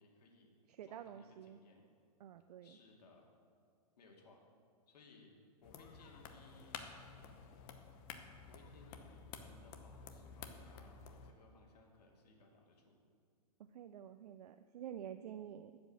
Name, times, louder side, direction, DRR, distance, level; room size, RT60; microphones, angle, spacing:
voice 1, 0.0-0.5 0.8-1.8 2.6-3.3 4.0-4.5 4.9-5.3 5.6-6.8 7.1-7.4 8.5-13.0, left 3 dB, 85° left, 0 dB, 2.3 m, -63 dB
voice 2, 0.7-1.6 2.2-2.8 13.6-15.8, right 9 dB, 75° right, 10 dB, 0.5 m, -49 dB
sound 1, 5.6-11.3, left 6 dB, 35° left, 0.8 m, -52 dB
12.0 x 5.2 x 7.7 m, 2.2 s
hypercardioid pair, 155°, 20 cm